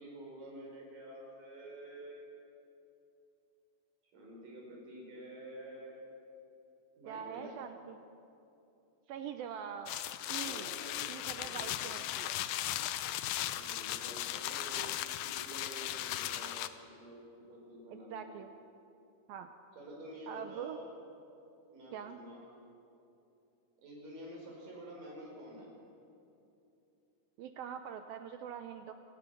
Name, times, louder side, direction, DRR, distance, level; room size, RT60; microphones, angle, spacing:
voice 1, 0.0-2.2 4.1-6.0 7.0-7.6 10.3-11.9 13.5-14.9 15.2-17.2 17.5-18.3 19.8-20.9 21.7-22.4 23.8-25.7, right 1 dB, 55° right, -1 dB, 6.2 m, -49 dB
voice 2, 7.1-8.0 9.1-9.9 10.3-10.7 11.1-12.3 17.9-18.5 19.3-19.5 20.3-20.8 21.9-22.2 27.4-28.9, right 8 dB, 75° right, 7 dB, 2.3 m, -43 dB
sound 1, 9.9-16.7, left 13 dB, 75° left, 2.3 m, -37 dB
27.0 x 18.0 x 6.9 m, 2.8 s
omnidirectional pair, 4.7 m